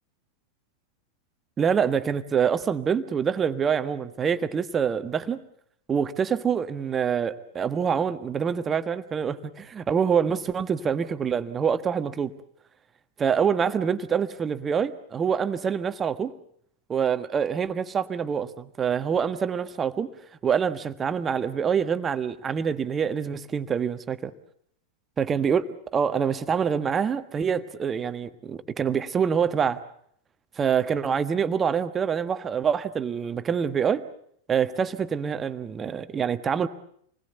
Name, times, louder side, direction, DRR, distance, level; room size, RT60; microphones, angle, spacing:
voice 1, 1.6-5.4 5.9-12.3 13.2-16.3 16.9-20.1 20.4-24.3 25.2-29.8 30.6-34.0 34.5-36.7, right 7 dB, 20° right, 1.4 m, -26 dB
27.5 x 20.5 x 8.2 m
figure-of-eight pair, 90°, 0 cm